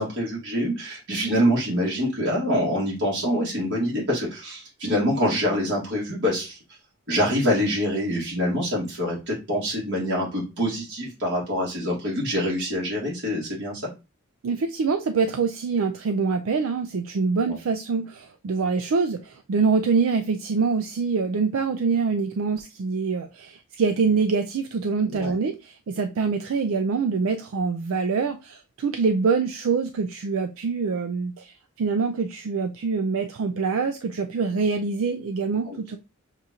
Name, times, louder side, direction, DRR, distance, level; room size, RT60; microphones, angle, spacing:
voice 1, 0.0-6.6 7.1-13.9 17.4-17.6 25.0-25.3 35.7-36.0, equal, 60° right, -4 dB, 1.7 m, -25 dB
voice 2, 14.4-36.0, right 4 dB, 75° right, 6 dB, 0.4 m, -25 dB
6.5 x 2.4 x 2.8 m, 0.28 s
head